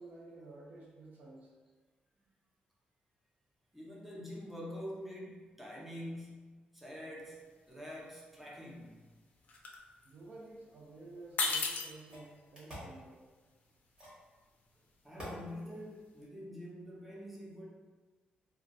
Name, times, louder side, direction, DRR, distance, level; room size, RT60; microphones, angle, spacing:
voice 1, 0.0-1.5 10.0-13.2, right 2 dB, 65° right, -3 dB, 0.7 m, -52 dB
voice 2, 3.7-9.0 15.0-17.7, equal, 5° right, -5 dB, 0.6 m, -46 dB
sound 1, 7.2-7.4 7.7-8.4 8.7-10.9 11.2-16.2, left 3 dB, 55° left, 0.4 m, -38 dB
sound 2, 11.3-11.4 12.1-13.0 14.0-14.3 15.2-15.4, equal, 25° right, 1.2 m, -47 dB
2.3 x 2.3 x 3.9 m, 1.4 s
cardioid pair, 130°, 3 cm